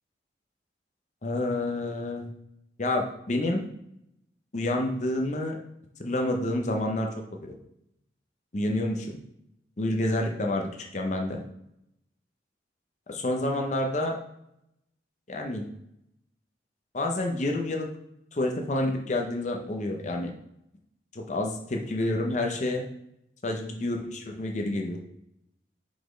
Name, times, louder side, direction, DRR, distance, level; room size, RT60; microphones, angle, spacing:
voice 1, 1.2-2.3 2.8-3.7 4.5-5.6 6.0-7.1 7.4-7.5 8.5-9.2 9.8-11.4 13.1-14.2 15.3-15.6 16.9-17.9 18.3-20.3 21.1-22.8 23.4-25.0, left 1 dB, 40° left, 2 dB, 0.6 m, -28 dB
5.1 x 4.0 x 4.9 m, 0.80 s
head